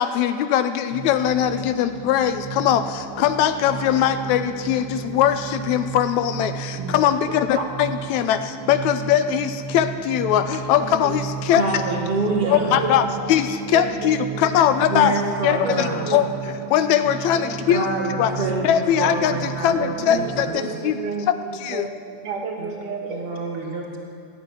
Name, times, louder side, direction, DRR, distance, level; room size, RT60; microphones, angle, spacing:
voice 1, 0.0-11.6 12.5-15.1 15.4-16.3 16.7-17.9 18.2-18.3 18.6-21.0 21.5-21.9, left 10 dB, 80° left, 10 dB, 1.8 m, -21 dB
sound 1, 0.9-20.5, right 7 dB, 60° right, 2.0 m, -34 dB
voice 2, 7.3-7.6 10.8-11.2 11.5-11.6 12.4-13.3 13.7-14.7 15.6-16.3 17.3-17.7 20.0-21.9 22.2-23.5, right 4 dB, 85° right, 1 dB, 3.3 m, -32 dB
voice 3, 11.5-12.8 14.8-16.1 17.7-20.6 22.6-22.7 23.1-24.0, right 3 dB, 20° right, -1 dB, 1.7 m, -27 dB
15.0 x 8.8 x 9.5 m, 2.4 s
omnidirectional pair, 3.5 m